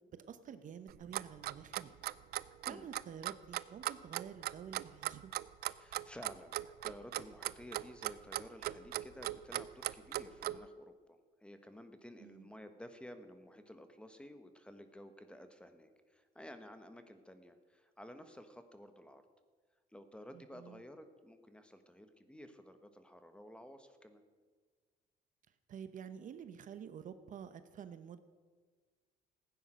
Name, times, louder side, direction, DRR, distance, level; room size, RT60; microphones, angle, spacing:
voice 1, 0.1-1.9 2.6-5.3 12.2-12.5 20.3-20.8 25.7-28.2, right 8 dB, 50° right, 11 dB, 0.8 m, -49 dB
Clock, 0.9-10.6, right 15 dB, 70° right, 0.5 m, -38 dB
voice 2, 5.7-19.2 19.9-24.2, left 1 dB, 5° left, 9 dB, 1.2 m, -53 dB
15.5 x 9.4 x 6.3 m, 1.5 s
cardioid pair, 110°, 17 cm